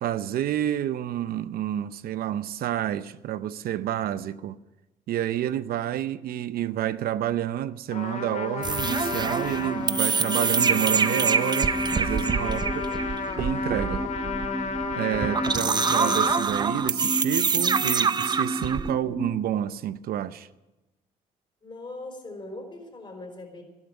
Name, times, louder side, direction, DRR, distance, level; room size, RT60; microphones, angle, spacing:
voice 1, 0.0-4.6 5.1-12.6 13.4-14.0 14.9-20.5, right 11 dB, 70° right, 0.6 m, -29 dB
Trumpet, 7.9-16.5, left 5 dB, 50° left, 1.8 m, -33 dB
sound 1, 8.6-18.9, right 6 dB, 25° right, 0.5 m, -26 dB
sound 2, 8.9-19.4, equal, 5° right, 1.4 m, -34 dB
voice 2, 12.4-13.1 21.6-23.6, left 2 dB, 30° left, 4.9 m, -41 dB
13.0 x 12.0 x 9.0 m
cardioid pair, 105°, 16 cm